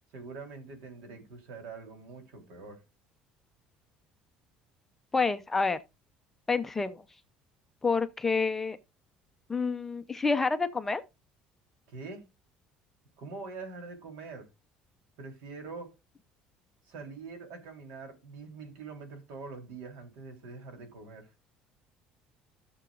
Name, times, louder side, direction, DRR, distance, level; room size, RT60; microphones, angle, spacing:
voice 1, 0.1-2.8 11.9-12.2 13.2-14.5 15.2-15.9 16.8-21.3, right 4 dB, 70° right, 3.4 m, -44 dB
voice 2, 5.1-5.8 6.5-7.0 7.8-8.8 9.5-11.0, left 4 dB, 10° left, 0.5 m, -28 dB
15.0 x 6.9 x 2.4 m
cardioid pair, 175°, 3 cm